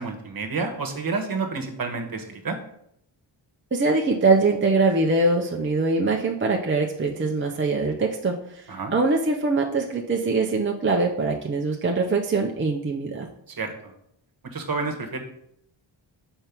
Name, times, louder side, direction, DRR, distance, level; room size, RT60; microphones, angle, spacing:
voice 1, 0.0-2.6 8.7-8.9 13.6-13.9 14.4-15.2, right 4 dB, 45° right, 4 dB, 1.3 m, -29 dB
voice 2, 3.7-13.3, right 3 dB, 25° right, 1 dB, 0.7 m, -23 dB
5.3 x 4.4 x 6.0 m, 0.73 s
wide cardioid pair, 105°, 47 cm